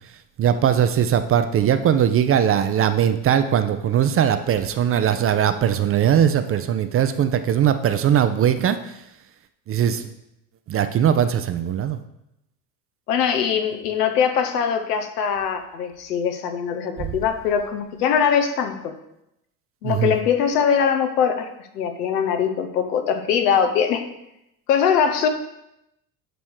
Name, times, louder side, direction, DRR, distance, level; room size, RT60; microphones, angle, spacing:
voice 1, 0.4-8.8 9.7-10.1 10.7-12.0 17.0-17.1 19.8-20.1, right 9 dB, 30° right, 10 dB, 0.5 m, -20 dB
voice 2, 13.1-18.9 19.8-24.1 24.7-25.3, left 7 dB, 75° left, 7 dB, 1.0 m, -22 dB
9.1 x 3.1 x 6.4 m, 0.85 s
hypercardioid pair, 70°, 48 cm